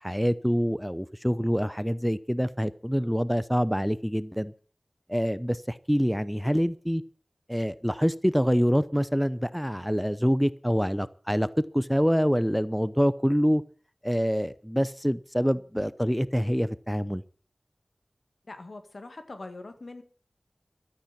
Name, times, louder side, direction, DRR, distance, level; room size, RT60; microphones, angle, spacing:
voice 1, 0.0-4.5 5.1-7.0 7.5-11.5 11.7-13.6 14.0-17.2, equal, ahead, 17 dB, 0.7 m, -26 dB
voice 2, 18.5-20.0, left 2 dB, 75° left, 8 dB, 2.1 m, -42 dB
13.0 x 8.8 x 8.4 m, 0.44 s
wide cardioid pair, 45°, 0 cm